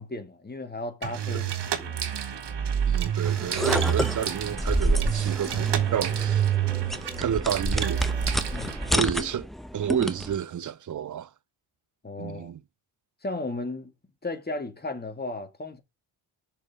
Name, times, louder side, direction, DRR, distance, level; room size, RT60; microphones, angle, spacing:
voice 1, 0.0-2.0 8.5-8.9 12.0-12.5 13.2-13.9 14.2-15.8, left 2 dB, 20° left, 2.4 m, -35 dB
sound 1, 1.0-9.0, right 9 dB, 60° right, 1.4 m, -28 dB
voice 2, 2.9-6.5 7.2-8.1 8.9-9.5 9.7-11.3 12.2-12.6, right 9 dB, 40° right, 0.6 m, -30 dB
sound 2, 3.2-10.4, equal, ahead, 0.9 m, -30 dB
6.6 x 5.5 x 5.3 m
cardioid pair, 80°, 47 cm